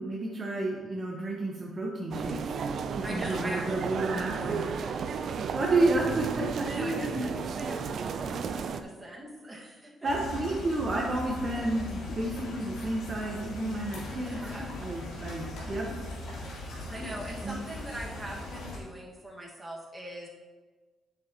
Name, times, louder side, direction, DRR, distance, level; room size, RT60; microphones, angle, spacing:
voice 1, 0.0-2.5 3.0-4.6 5.5-7.3 10.0-14.4 14.8-15.9 17.4-17.6, right 2 dB, 40° right, -2 dB, 1.1 m, -31 dB
sound 1, 2.1-8.8, right 6 dB, 60° right, 0.4 m, -33 dB
voice 2, 3.0-5.5 5.8-6.0 6.6-10.1 14.1-14.8 16.9-20.3, right 1 dB, 15° right, -4 dB, 1.7 m, -42 dB
sound 2, 10.0-18.8, left 2 dB, 90° left, 2.1 m, -39 dB
8.3 x 6.7 x 2.9 m, 1.4 s
cardioid pair, 90°, 0 cm